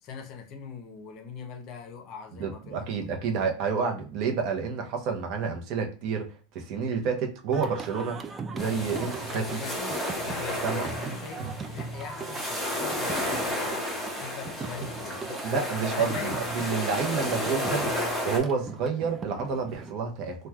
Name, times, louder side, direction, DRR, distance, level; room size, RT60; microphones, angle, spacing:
voice 1, 0.0-3.1 9.2-15.4 15.9-17.5, left 6 dB, 45° left, 0.6 m, -42 dB
voice 2, 2.3-6.3 6.5-8.3 8.5-9.6 10.6-10.9 11.4-11.5 15.4-17.9 18.2-20.4, right 5 dB, 50° right, 0.7 m, -29 dB
Singing, 7.5-19.9, right 4 dB, 20° right, 0.3 m, -40 dB
sound 1, 8.6-18.4, left 1 dB, 5° left, 1.0 m, -32 dB
3.1 x 2.2 x 2.3 m
supercardioid pair, 135°, 0 cm